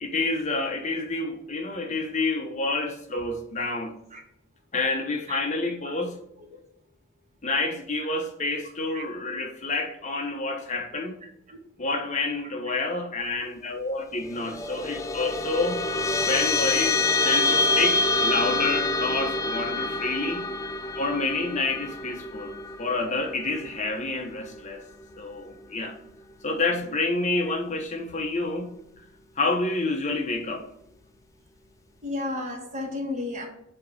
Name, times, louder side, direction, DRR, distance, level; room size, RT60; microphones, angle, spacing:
voice 1, 0.0-3.9 4.7-6.2 7.4-11.2 11.8-15.9 16.2-20.5 21.0-24.8 25.2-25.9 26.4-28.8 29.4-30.6, left 3 dB, 35° left, 0.9 m, -28 dB
sound 1, 14.3-25.0, left 3 dB, 15° left, 0.3 m, -27 dB
voice 2, 32.0-33.5, left 2 dB, 35° right, 1.4 m, -32 dB
7.7 x 3.0 x 4.8 m
head